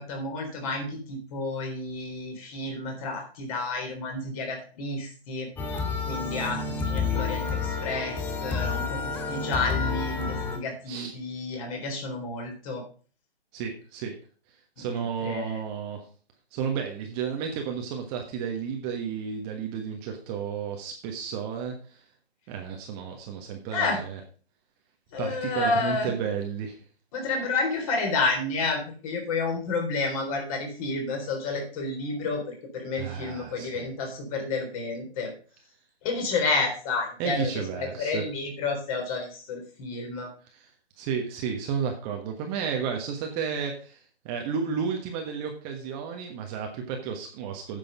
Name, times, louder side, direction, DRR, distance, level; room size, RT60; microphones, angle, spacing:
voice 1, 0.0-5.5 6.0-12.8 14.8-15.6 23.7-24.0 25.1-26.1 27.1-35.3 36.0-40.3, left 3 dB, 35° left, 2 dB, 4.0 m, -30 dB
sound 1, 5.6-10.6, left 5 dB, 5° left, 0.6 m, -29 dB
voice 2, 13.5-14.1 14.8-16.0 16.5-22.0 22.5-24.2 25.2-26.8 32.9-33.9 37.2-38.2 40.5-40.7 41.0-47.8, right 6 dB, 20° right, 2 dB, 1.3 m, -32 dB
9.6 x 6.9 x 5.3 m, 0.40 s
figure-of-eight pair, 140°, 32 cm